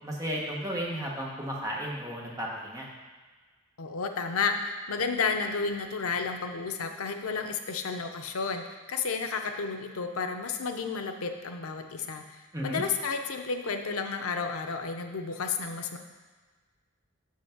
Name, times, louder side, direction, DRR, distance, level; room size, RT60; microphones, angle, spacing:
voice 1, 0.0-2.9 12.5-12.8, equal, 15° right, -3 dB, 1.2 m, -34 dB
voice 2, 3.8-16.0, left 5 dB, 85° left, 5 dB, 0.7 m, -32 dB
6.4 x 5.7 x 5.9 m, 1.4 s
head